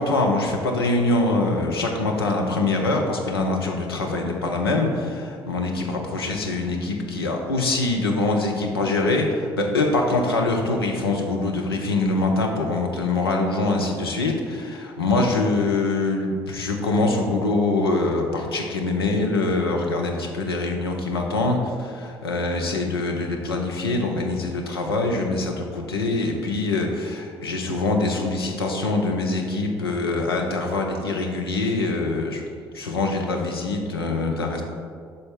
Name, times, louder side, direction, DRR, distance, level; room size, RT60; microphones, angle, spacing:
voice 1, 0.0-32.4 32.7-34.6, left 2 dB, 85° left, 1 dB, 0.6 m, -24 dB
6.8 x 3.9 x 3.7 m, 2.1 s
figure-of-eight pair, 50°, 12 cm